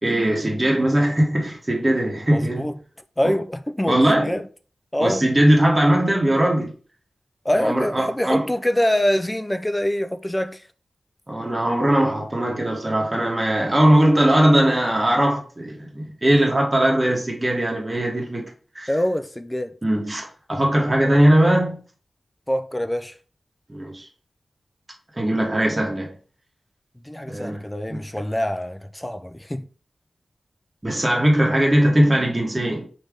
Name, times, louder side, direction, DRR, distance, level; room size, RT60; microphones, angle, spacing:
voice 1, 0.0-2.7 3.2-3.3 3.9-4.4 5.0-6.7 7.5-8.5 11.3-18.5 18.7-18.9 19.8-21.8 23.7-24.1 25.1-26.1 27.3-27.6 27.9-28.0 30.8-32.8, right 1 dB, 25° right, 1.0 m, -20 dB
voice 2, 2.3-2.8 3.2-4.5 4.9-5.2 7.4-10.6 18.9-19.7 22.5-23.2 27.0-29.7, left 1 dB, 15° left, 0.3 m, -24 dB
3.2 x 2.7 x 3.4 m
wide cardioid pair, 65°, 0 cm